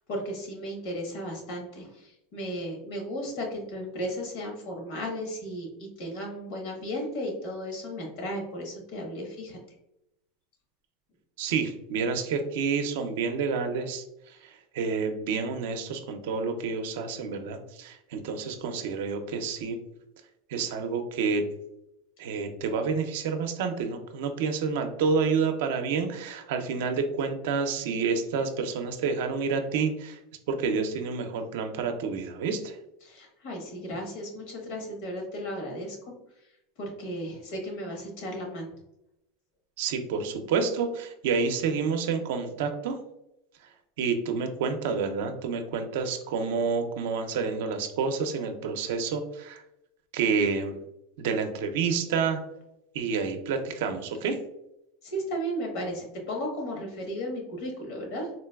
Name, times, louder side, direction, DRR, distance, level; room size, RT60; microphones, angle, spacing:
voice 1, 0.0-9.6 33.0-36.0 36.8-38.7 55.0-58.3, equal, 65° left, 1 dB, 1.1 m, -35 dB
voice 2, 11.4-14.0 14.7-19.8 20.5-21.4 22.2-30.2 30.5-32.8 39.8-43.0 44.0-49.6 50.1-50.8 51.2-52.4 52.9-54.4, right 5 dB, 75° right, 6 dB, 0.4 m, -29 dB
3.8 x 2.2 x 2.2 m, 0.85 s
supercardioid pair, 130°, 0 cm